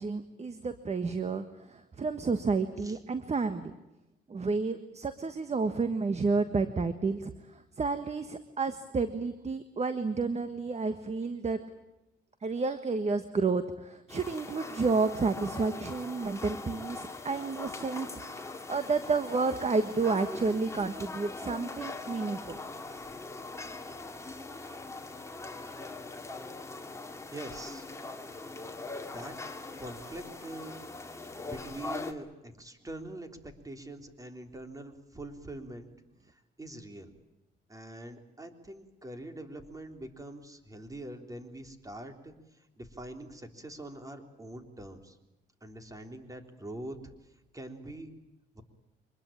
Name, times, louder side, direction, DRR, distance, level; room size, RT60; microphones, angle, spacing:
voice 1, 0.0-3.7 4.3-11.6 12.4-18.2 18.7-22.6, right 4 dB, 35° right, 10 dB, 1.5 m, -30 dB
sound 1, 14.1-32.1, left 3 dB, 15° left, 2.4 m, -41 dB
voice 2, 27.3-27.9 29.1-29.5 29.8-30.8 31.5-35.9 36.2-37.1 37.7-45.2 45.6-47.0 47.5-48.1 48.5-48.6, right 1 dB, 15° right, 6 dB, 3.6 m, -44 dB
25.0 x 21.0 x 8.9 m, 0.96 s
cardioid pair, 90°, 20 cm